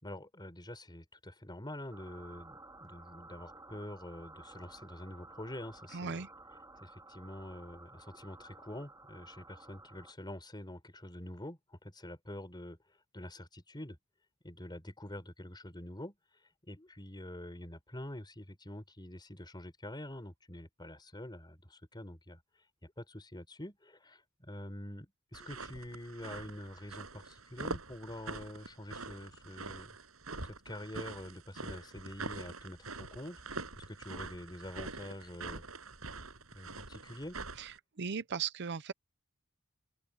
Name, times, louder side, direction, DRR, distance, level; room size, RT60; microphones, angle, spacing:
voice 1, 0.0-2.6 2.8-6.2 6.8-12.8 13.1-14.0 14.4-16.2 16.6-22.4 22.8-29.9 30.4-33.4 33.7-35.6 36.5-37.4, left 1 dB, 20° left, 5.3 m, -46 dB
sound 1, 1.9-10.1, right 2 dB, 15° right, 3.0 m, -54 dB
voice 2, 5.9-6.3 37.6-38.9, right 6 dB, 55° right, 0.7 m, -37 dB
sound 2, 25.3-37.8, right 3 dB, 80° right, 6.3 m, -44 dB
open air
head